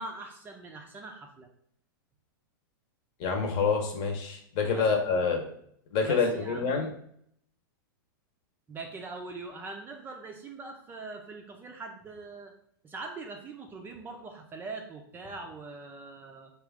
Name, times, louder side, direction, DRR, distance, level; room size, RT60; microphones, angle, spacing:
voice 1, 0.0-1.5 4.7-4.9 6.0-6.7 8.7-12.5 12.8-16.5, right 3 dB, 20° right, 3 dB, 0.4 m, -42 dB
voice 2, 3.2-5.4 5.9-6.9, left 5 dB, 40° left, 3 dB, 0.9 m, -27 dB
4.7 x 2.4 x 3.5 m, 0.67 s
hypercardioid pair, 130°, 12 cm